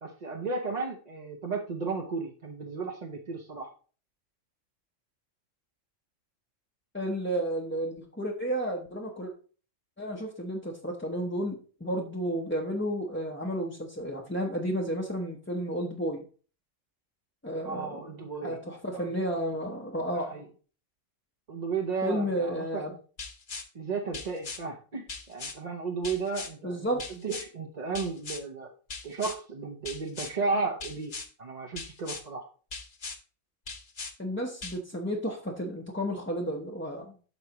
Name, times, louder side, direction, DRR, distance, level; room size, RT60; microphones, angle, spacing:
voice 1, 0.0-3.7 17.6-18.6 18.9-19.1 20.1-20.5 21.5-22.9 23.7-28.7 29.0-31.1 31.4-32.5, right 4 dB, 40° right, 2 dB, 0.7 m, -34 dB
voice 2, 6.9-9.3 10.0-16.2 17.4-18.0 18.4-20.4 22.0-22.9 26.6-27.0 34.2-37.1, equal, 10° left, -2 dB, 0.7 m, -32 dB
sound 1, 23.2-23.7 24.1-24.6 25.1-25.6 26.0-26.5 27.0-27.5 27.9-28.4 28.9-29.4 29.8-30.3 30.8-31.3 31.8-32.2 32.7-33.2 33.7-34.1 34.6-34.8, left 4 dB, 40° left, 1.1 m, -39 dB
12.0 x 4.7 x 2.9 m, 0.39 s
omnidirectional pair, 1.3 m